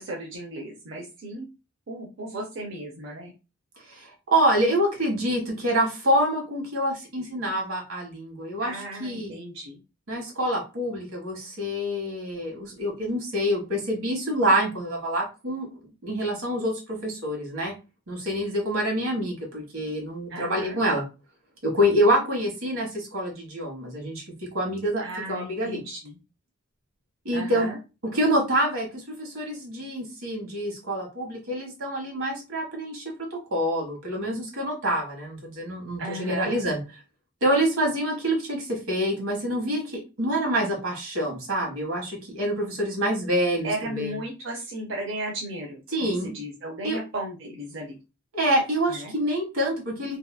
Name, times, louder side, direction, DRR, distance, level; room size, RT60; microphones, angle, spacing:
voice 1, 0.0-1.5 1.9-3.3 8.6-9.8 20.3-20.8 25.0-26.2 27.3-27.8 36.0-36.6 43.6-48.0 48.9-49.1, right 1 dB, 60° right, -1 dB, 0.5 m, -35 dB
voice 2, 3.9-9.3 10.1-17.7 18.1-21.0 21.6-25.0 25.3-25.8 27.2-27.7 28.1-33.0 33.3-36.8 37.4-44.2 45.9-46.3 46.8-47.0 48.3-50.2, equal, 90° right, 0 dB, 1.2 m, -26 dB
2.7 x 2.3 x 2.2 m, 0.29 s
head